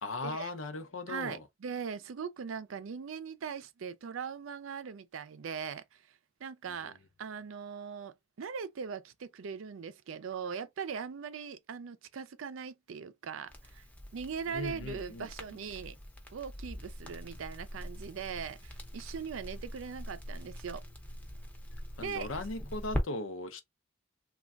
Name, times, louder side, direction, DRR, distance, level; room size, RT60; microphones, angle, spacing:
voice 1, 0.0-1.4 6.6-7.0 14.5-15.3 22.0-23.6, left 2 dB, 90° left, 0.7 m, -38 dB
voice 2, 1.1-6.0 6.4-13.8 14.1-16.0 16.3-20.8 22.0-22.3, right 6 dB, 80° right, 0.4 m, -40 dB
Crackle, 13.5-23.0, equal, 10° left, 0.6 m, -42 dB
3.2 x 2.3 x 2.4 m
head